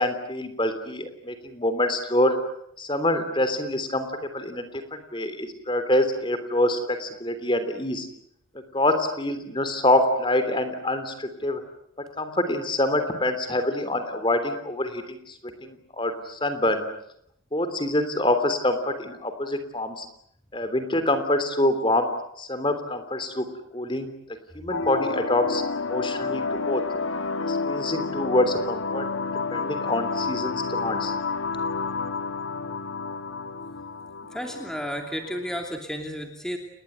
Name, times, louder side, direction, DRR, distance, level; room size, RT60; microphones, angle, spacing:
voice 1, 0.0-2.4 2.8-8.1 8.7-11.6 12.2-16.8 17.5-20.0 20.5-22.1 22.4-23.4 23.7-24.1 24.5-26.8 27.5-29.1 29.5-31.1, left 1 dB, 25° left, 9 dB, 3.4 m, -26 dB
sound 1, 24.7-35.7, left 4 dB, 80° left, 1.4 m, -30 dB
voice 2, 34.3-36.6, equal, 5° left, 3 dB, 2.8 m, -32 dB
30.0 x 21.0 x 9.5 m, 0.73 s
head